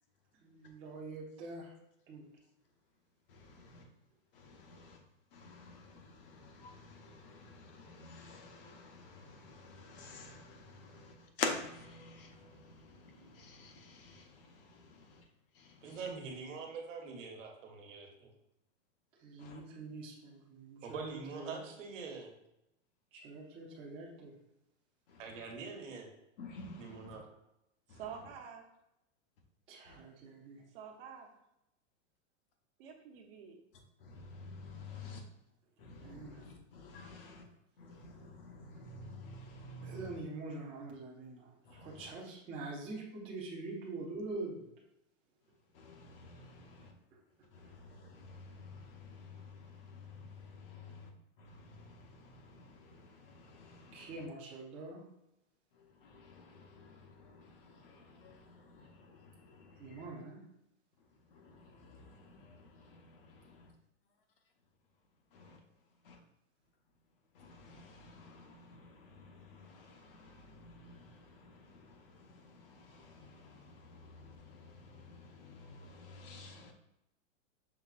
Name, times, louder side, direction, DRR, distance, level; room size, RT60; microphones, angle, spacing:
voice 1, 0.4-1.7 2.1-2.2 19.2-21.0 21.3-21.6 23.1-24.4 29.7-30.6 36.0-36.4 39.8-44.7 47.1-47.2 53.9-55.0 59.8-60.4, right 2 dB, 15° right, -4 dB, 0.6 m, -45 dB
voice 2, 3.3-4.0 4.3-16.1 19.4-19.6 25.1-25.5 26.4-27.2 27.9-28.3 29.8-30.0 33.7-35.2 35.8-37.5 37.8-40.2 41.6-42.1 45.4-47.0 47.2-54.3 55.7-60.1 61.0-63.7 65.3-66.2 67.3-76.7, left 4 dB, 45° left, 3 dB, 0.8 m, -50 dB
voice 3, 15.8-18.3 20.8-22.3 25.2-26.1 26.8-27.2, right 4 dB, 75° right, 2 dB, 1.2 m, -44 dB
voice 4, 27.9-28.6 30.7-31.3 32.8-33.6, right 7 dB, 45° right, 2 dB, 0.8 m, -48 dB
5.8 x 3.7 x 2.4 m, 0.85 s
supercardioid pair, 165°, 38 cm